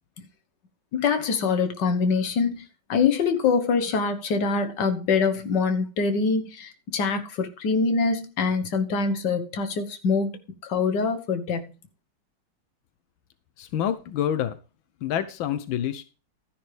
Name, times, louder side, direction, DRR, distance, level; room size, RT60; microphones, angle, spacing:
voice 1, 0.9-2.6 2.9-10.3 10.6-11.7, left 5 dB, 65° left, 1.9 m, -24 dB
voice 2, 13.6-14.6 15.0-16.0, left 10 dB, 90° left, 1.6 m, -27 dB
13.0 x 10.5 x 3.4 m
omnidirectional pair, 2.1 m